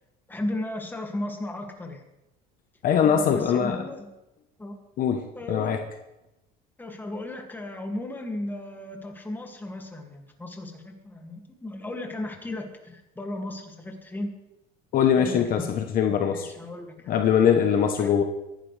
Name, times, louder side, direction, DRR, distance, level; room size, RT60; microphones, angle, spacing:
voice 1, 0.3-2.0 3.0-4.1 4.6-4.8 5.3-5.8 6.8-14.3 15.2-15.6 16.3-17.2 18.0-18.2, left 1 dB, 10° left, 2 dB, 2.3 m, -35 dB
voice 2, 2.8-3.8 5.0-5.8 14.9-16.5 17.1-18.2, left 8 dB, 50° left, 6 dB, 1.1 m, -22 dB
24.5 x 11.5 x 3.4 m, 0.96 s
cardioid pair, 125°, 19 cm